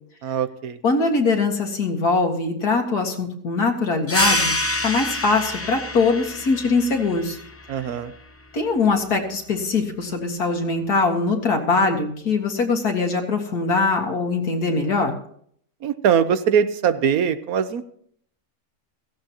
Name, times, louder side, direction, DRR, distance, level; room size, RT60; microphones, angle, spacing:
voice 1, 0.2-0.8 7.7-8.1 15.8-17.9, right 8 dB, 70° right, 12 dB, 1.3 m, -21 dB
voice 2, 0.8-4.6 4.8-7.4 8.5-15.1, left 3 dB, 90° left, 3 dB, 2.5 m, -22 dB
sound 1, 4.1-9.2, left 1 dB, 15° left, 0.6 m, -28 dB
16.5 x 16.0 x 3.0 m, 0.64 s
omnidirectional pair, 1.6 m